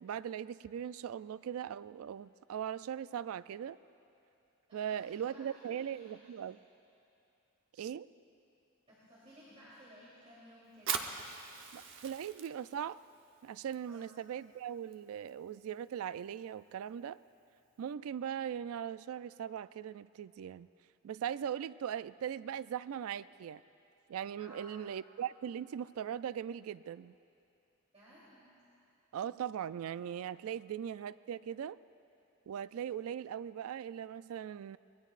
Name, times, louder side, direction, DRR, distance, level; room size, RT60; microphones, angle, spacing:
voice 1, 0.0-3.8 4.7-6.6 7.8-8.1 11.7-13.0 13.4-17.2 17.8-20.7 21.0-23.6 24.1-27.1 29.1-31.8 32.5-34.8, right 9 dB, 70° right, 17 dB, 0.3 m, -40 dB
voice 2, 4.7-6.4 8.9-11.0 13.9-14.1 24.4-24.8 27.9-28.6 30.5-30.7, equal, 30° right, -9 dB, 3.2 m, -57 dB
Fire, 10.7-17.9, right 7 dB, 55° right, 0.8 m, -45 dB
25.0 x 21.0 x 2.5 m, 2.8 s
head